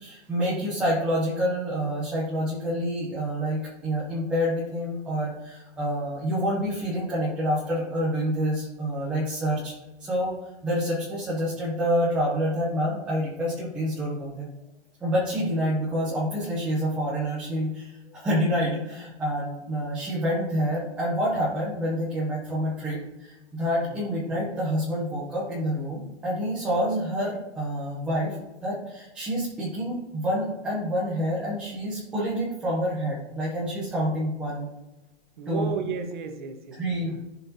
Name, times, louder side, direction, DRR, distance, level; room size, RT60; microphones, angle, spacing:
voice 1, 0.0-9.7 10.0-10.3 10.6-14.5 15.0-28.4 28.6-34.7 35.5-35.7 36.8-37.2, equal, 5° right, -8 dB, 0.6 m, -27 dB
voice 2, 35.4-37.2, right 6 dB, 45° right, 6 dB, 1.1 m, -34 dB
13.0 x 5.7 x 2.8 m, 1.0 s
hypercardioid pair, 175°, 35 cm